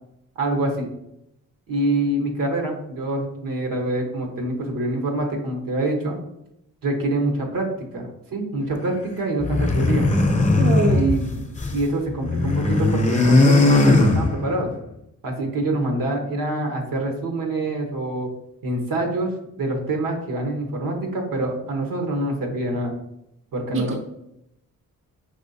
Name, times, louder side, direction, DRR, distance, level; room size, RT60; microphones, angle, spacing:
voice 1, 0.4-0.9 1.7-6.2 6.8-7.7 7.9-10.1 10.9-11.4 11.7-14.7 15.2-18.3 18.6-19.3 19.6-22.9 23.5-24.0, right 2 dB, 75° right, 2 dB, 1.1 m, -25 dB
sound 1, 9.4-11.8 12.1-14.7, left 2 dB, 20° left, 0.7 m, -18 dB
voice 2, 10.6-11.0 23.7-24.0, right 3 dB, 40° right, 3 dB, 0.6 m, -23 dB
5.4 x 3.1 x 2.7 m, 0.80 s
cardioid pair, 75°, 34 cm